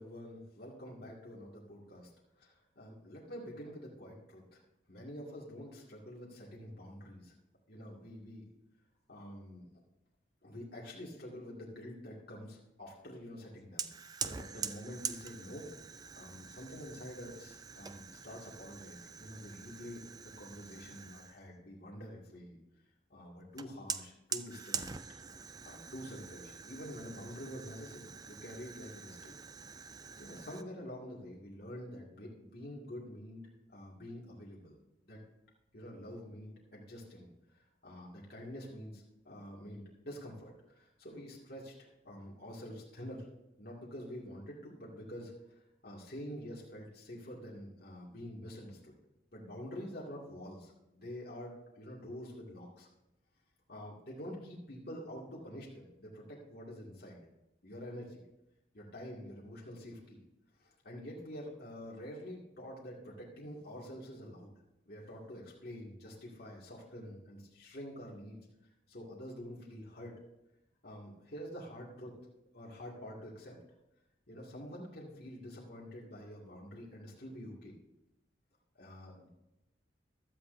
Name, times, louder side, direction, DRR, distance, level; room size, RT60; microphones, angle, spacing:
voice 1, 0.0-2.1 2.4-4.6 4.9-7.3 7.7-8.5 9.1-9.7 10.4-13.9 14.2-15.7 16.1-20.0 20.4-22.6 23.1-24.9 25.6-29.3 30.2-33.4 33.7-34.8 35.1-35.2 35.7-37.3 37.5-41.7 42.0-43.3 43.6-45.3 45.8-48.9 49.3-52.9 53.7-57.2 57.6-58.2 58.7-60.2 60.6-64.5 64.9-68.4 68.9-70.1 70.8-72.2 72.5-73.6 74.3-77.7 78.7-79.3, equal, 55° left, -5 dB, 2.1 m, -47 dB
Fire, 13.8-21.4 23.6-30.6, right 6 dB, 20° right, 0.3 m, -44 dB
16.0 x 12.0 x 2.6 m, 0.91 s
head